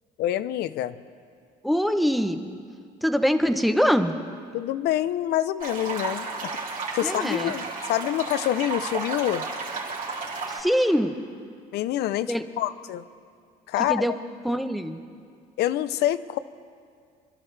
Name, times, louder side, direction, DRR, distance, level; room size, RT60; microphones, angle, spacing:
voice 1, 0.2-1.0 4.5-6.5 6.9-9.4 11.7-13.0 13.7-14.1 15.6-16.4, left 13 dB, 75° left, 15 dB, 0.6 m, -26 dB
voice 2, 1.6-2.6 3.0-4.1 7.0-7.5 10.5-11.1 12.3-12.4 13.9-14.1 14.4-15.0, equal, ahead, 8 dB, 0.8 m, -23 dB
sound 1, 5.6-10.6, right 4 dB, 50° right, 3.3 m, -33 dB
26.5 x 12.0 x 3.3 m, 2.2 s
cardioid pair, 110°, 17 cm